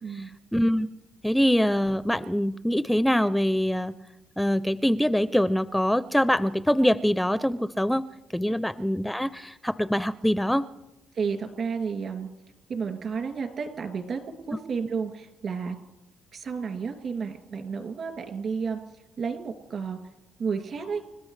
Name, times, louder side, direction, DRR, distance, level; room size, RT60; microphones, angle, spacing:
voice 1, 0.0-0.4 8.5-8.6 11.1-12.3 12.7-14.2 14.5-15.8 16.3-18.8 19.2-20.0 20.4-21.0, right 5 dB, 60° right, 4 dB, 2.5 m, -31 dB
voice 2, 0.5-0.9 1.2-4.0 4.4-8.1 8.3-10.6, equal, 5° left, 14 dB, 0.4 m, -24 dB
30.0 x 13.0 x 3.3 m, 0.94 s
cardioid pair, 90°, 0 cm